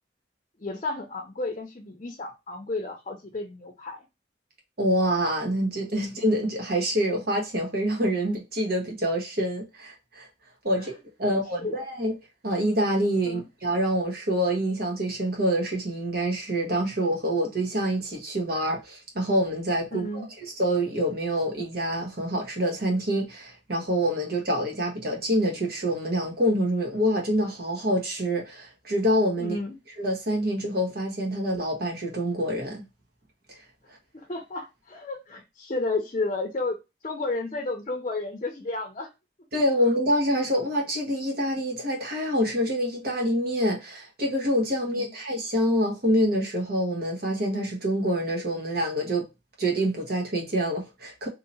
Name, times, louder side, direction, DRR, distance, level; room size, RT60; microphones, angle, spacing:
voice 1, 0.6-4.1 10.8-10.9 11.2-11.8 13.2-13.4 19.9-20.3 29.4-29.8 34.1-36.8 37.0-39.1 44.9-45.1, left 3 dB, 40° left, 0.6 m, -32 dB
voice 2, 4.8-10.3 10.6-10.9 11.2-12.1 12.4-20.3 20.6-29.5 30.0-32.8 39.5-49.2 49.6-51.3, equal, 60° right, 1.2 m, -26 dB
2.8 x 2.8 x 4.0 m
head